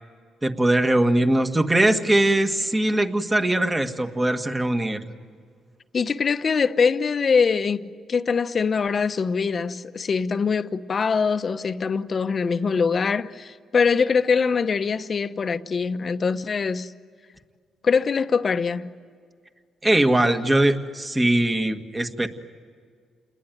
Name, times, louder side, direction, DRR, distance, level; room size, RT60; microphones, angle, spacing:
voice 1, 0.4-5.1 19.8-22.3, right 1 dB, 15° right, 1.8 m, -21 dB
voice 2, 5.9-16.9 17.8-18.9, left 5 dB, 40° left, 1.0 m, -23 dB
29.5 x 21.0 x 9.3 m
cardioid pair, 90°, 0 cm